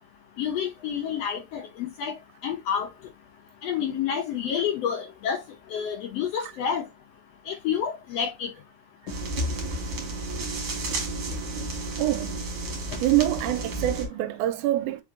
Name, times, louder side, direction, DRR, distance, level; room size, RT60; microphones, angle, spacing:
voice 1, 0.4-2.1 2.4-2.9 3.6-5.4 5.7-6.8 7.5-8.5, left 8 dB, 75° left, 1.5 m, -29 dB
sound 1, 9.1-14.1, right 2 dB, 55° right, 1.9 m, -31 dB
voice 2, 12.0-12.4 13.0-15.0, right 15 dB, 85° right, 2.0 m, -25 dB
4.7 x 3.5 x 2.6 m
omnidirectional pair, 3.5 m